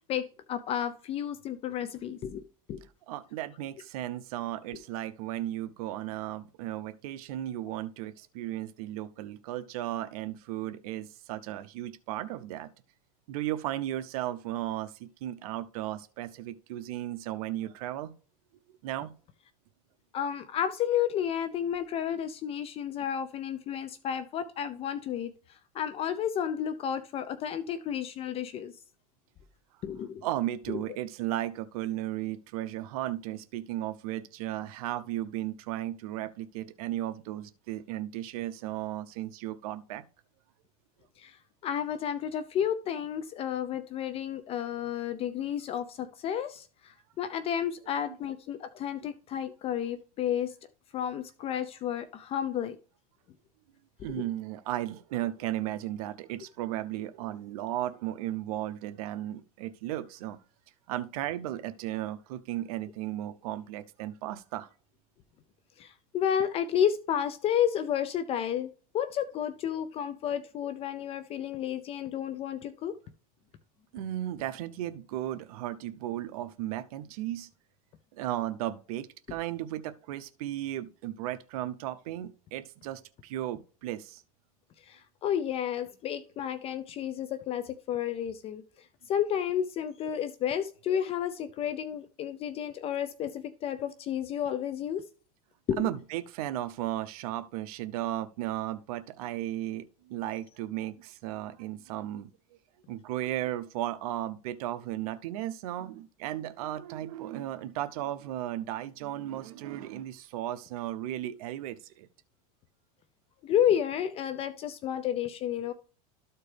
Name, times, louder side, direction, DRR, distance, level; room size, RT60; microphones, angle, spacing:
voice 1, 0.1-2.8 20.1-28.7 29.8-30.3 30.7-30.8 41.2-41.4 41.6-50.5 50.9-52.8 54.1-54.2 65.8-72.9 84.8-88.6 89.1-95.0 95.7-95.9 113.4-115.7, left 9 dB, 30° left, 0.5 m, -31 dB
voice 2, 3.1-12.7 13.3-18.1 18.8-19.1 30.2-40.0 54.0-60.4 60.9-64.7 73.9-77.5 78.2-84.2 95.8-102.6 102.9-112.1, right 13 dB, 70° right, 0.7 m, -35 dB
13.0 x 4.5 x 3.3 m
supercardioid pair, 145°, 19 cm